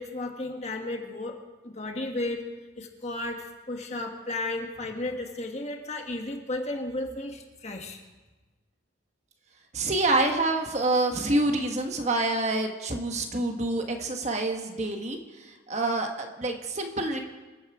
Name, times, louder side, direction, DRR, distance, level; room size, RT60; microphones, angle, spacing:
voice 1, 0.0-1.4 1.6-2.5 2.8-8.0, left 2 dB, 35° left, 3 dB, 1.5 m, -34 dB
voice 2, 9.7-15.2 15.7-17.2, right 2 dB, 35° right, 4 dB, 1.4 m, -27 dB
26.0 x 9.6 x 4.9 m, 1.2 s
head